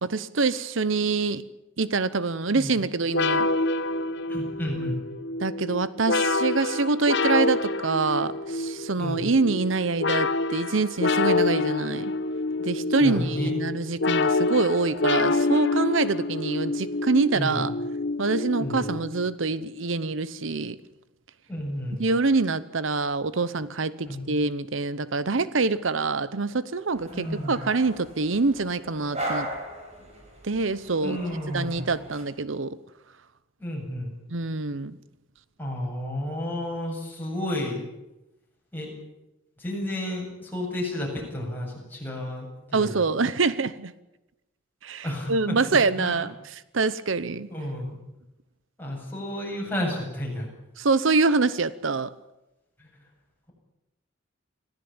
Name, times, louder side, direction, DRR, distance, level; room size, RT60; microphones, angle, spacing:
voice 1, 0.0-1.4 1.8-3.5 5.4-12.1 12.6-17.7 18.2-20.8 22.0-29.5 30.4-31.2 31.5-32.8 34.3-35.0 42.7-43.9 44.8-47.5 50.8-52.1, right 3 dB, 70° right, 16 dB, 0.9 m, -25 dB
sound 1, 3.1-19.3, left 3 dB, 60° left, 0.9 m, -27 dB
voice 2, 4.3-5.0 9.0-9.2 13.0-13.5 17.3-17.6 18.6-19.0 21.5-22.0 24.0-24.3 27.1-27.6 31.0-31.8 33.6-34.1 35.6-37.8 38.7-38.9 39.6-43.1 45.0-45.6 46.0-46.2 47.5-48.0 48.8-50.5 52.8-52.9, left 1 dB, 10° left, -2 dB, 7.7 m, -31 dB
sound 2, 27.0-32.2, right 1 dB, 35° right, 6.5 m, -37 dB
25.5 x 16.0 x 8.8 m, 0.96 s
head